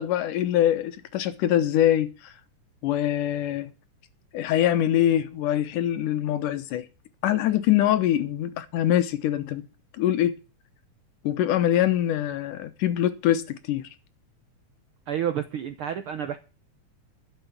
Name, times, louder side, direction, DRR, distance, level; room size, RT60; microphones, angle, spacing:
voice 1, 0.0-2.3 2.8-3.7 4.3-6.9 7.2-9.6 10.0-10.4 11.2-13.8, left 11 dB, 80° left, 2.6 m, -24 dB
voice 2, 15.1-16.4, right 9 dB, 75° right, 1.2 m, -29 dB
12.5 x 7.0 x 8.4 m
omnidirectional pair, 3.6 m